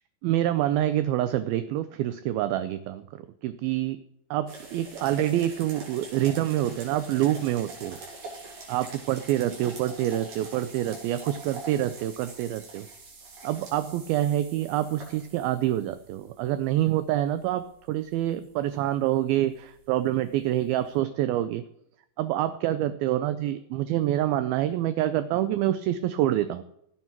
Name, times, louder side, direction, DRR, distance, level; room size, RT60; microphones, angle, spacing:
voice 1, 0.2-4.0 4.3-8.0 8.7-12.9 13.4-21.6 22.2-26.6, right 13 dB, 85° right, 11 dB, 2.2 m, -26 dB
sound 1, 4.5-21.0, right 3 dB, 60° right, 4.9 m, -45 dB
15.5 x 8.1 x 4.5 m, 0.76 s
omnidirectional pair, 4.8 m